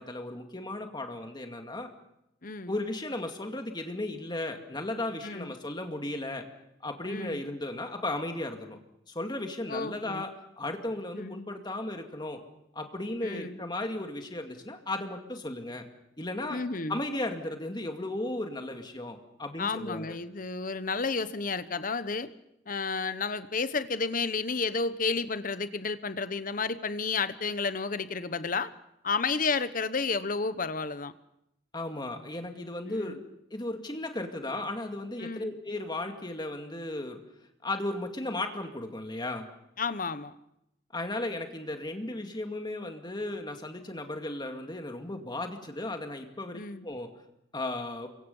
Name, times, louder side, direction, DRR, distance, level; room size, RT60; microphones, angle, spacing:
voice 1, 0.0-1.9 2.7-6.4 6.8-8.8 9.1-10.3 10.6-12.4 12.7-15.8 16.2-16.6 16.9-20.2 31.7-33.2 33.5-37.2 37.6-39.5 40.9-47.1 47.5-48.1, left 2 dB, 25° left, 5 dB, 2.2 m, -35 dB
voice 2, 2.4-2.7 5.2-5.5 7.1-7.4 9.7-10.3 11.1-11.4 13.2-13.6 16.5-17.0 19.6-22.3 22.7-28.7 29.0-31.1 32.9-33.2 35.2-35.5 39.8-40.3 46.5-46.9, left 4 dB, 45° left, 13 dB, 1.0 m, -31 dB
28.5 x 23.5 x 5.5 m, 0.81 s
head